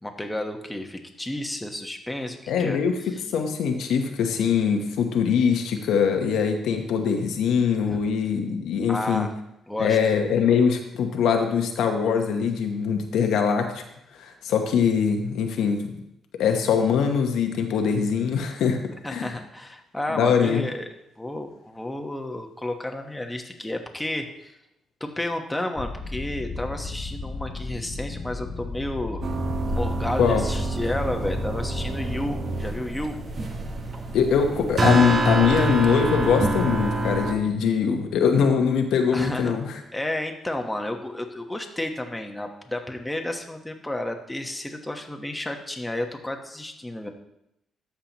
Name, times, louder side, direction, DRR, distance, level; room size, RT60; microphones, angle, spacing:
voice 1, 0.0-2.8 3.1-3.2 7.9-8.0 8.9-9.3 9.7-10.0 19.0-20.9 21.2-24.5 25.0-29.3 29.7-33.2 39.1-39.5 39.9-47.1, left 1 dB, 10° left, 3 dB, 1.1 m, -31 dB
voice 2, 2.5-2.9 3.3-9.3 9.8-13.8 14.2-15.9 16.4-18.8 19.1-19.3 20.1-20.6 30.2-30.5 34.1-39.8, left 6 dB, 80° left, 4 dB, 0.9 m, -22 dB
sound 1, 25.8-32.3, left 3 dB, 40° left, 1.6 m, -34 dB
sound 2, 29.2-37.3, right 2 dB, 45° right, 1.0 m, -26 dB
13.0 x 5.8 x 3.0 m, 0.81 s
cardioid pair, 90°, 0 cm